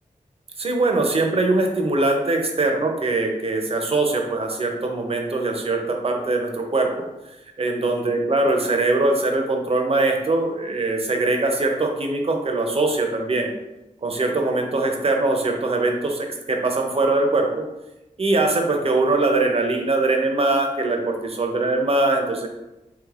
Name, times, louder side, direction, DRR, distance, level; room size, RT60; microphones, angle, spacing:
voice 1, 0.6-7.0 7.6-13.5 14.0-17.6 18.2-22.5, right 2 dB, 45° right, 2 dB, 0.5 m, -22 dB
3.2 x 3.0 x 2.4 m, 0.97 s
wide cardioid pair, 110°, 14 cm